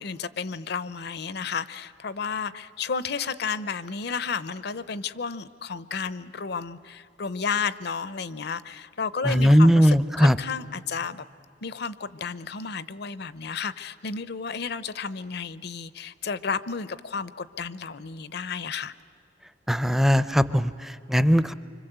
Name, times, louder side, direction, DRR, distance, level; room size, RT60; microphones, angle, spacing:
voice 1, 0.0-11.2 11.6-18.9, left 5 dB, 65° left, 15 dB, 0.7 m, -32 dB
voice 2, 9.2-10.4 19.7-21.5, equal, ahead, 14 dB, 0.5 m, -19 dB
25.5 x 25.5 x 8.0 m, 2.5 s
head